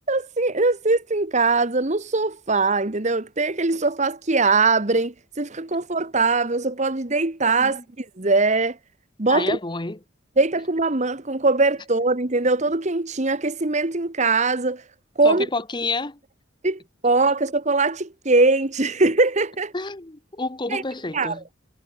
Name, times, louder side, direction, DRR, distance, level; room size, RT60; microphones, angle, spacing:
voice 1, 0.1-8.8 9.2-9.6 10.4-14.9 15.1-15.5 16.6-19.7 20.7-20.8 21.1-21.4, right 3 dB, 35° right, 1.3 m, -21 dB
voice 2, 9.3-10.0 15.2-16.2 19.7-21.4, left 3 dB, 20° left, 1.1 m, -29 dB
head